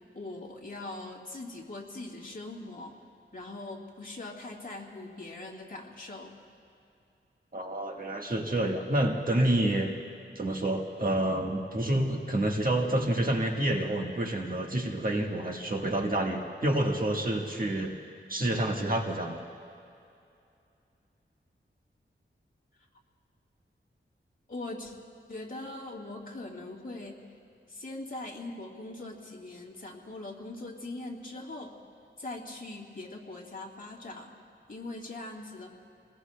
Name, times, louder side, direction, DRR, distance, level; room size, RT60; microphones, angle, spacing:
voice 1, 0.1-2.9 3.3-6.3 24.5-24.9 25.3-27.2 27.7-31.7 32.2-34.3 34.7-35.7, left 2 dB, 45° left, -1 dB, 2.7 m, -41 dB
voice 2, 7.5-9.9 10.3-17.9 18.3-19.4, right 1 dB, 45° right, 1 dB, 1.5 m, -28 dB
29.0 x 20.0 x 2.3 m, 2.5 s
wide cardioid pair, 80°, 21 cm